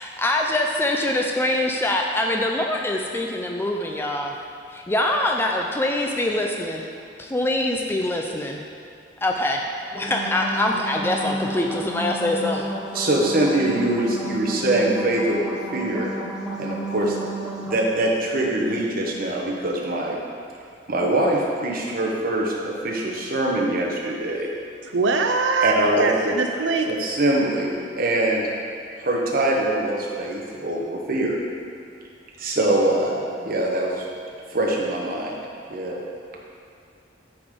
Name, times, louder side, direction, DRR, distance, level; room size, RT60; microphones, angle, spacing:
voice 1, 0.0-4.4 4.7-6.9 7.2-8.6 9.2-9.6 9.9-12.7, left 1 dB, 15° left, 0.4 m, -24 dB
sound 1, 9.8-17.8, right 1 dB, 5° right, 1.0 m, -32 dB
voice 2, 12.9-16.1 16.6-17.2 17.4-20.2 20.9-24.5 25.6-26.3 26.9-28.4 29.0-31.3 32.4-34.1 34.5-35.4 35.7-36.0, right 1 dB, 55° right, 1.1 m, -23 dB
voice 3, 24.8-26.9, right 4 dB, 80° right, 0.5 m, -22 dB
9.3 x 3.9 x 5.2 m
head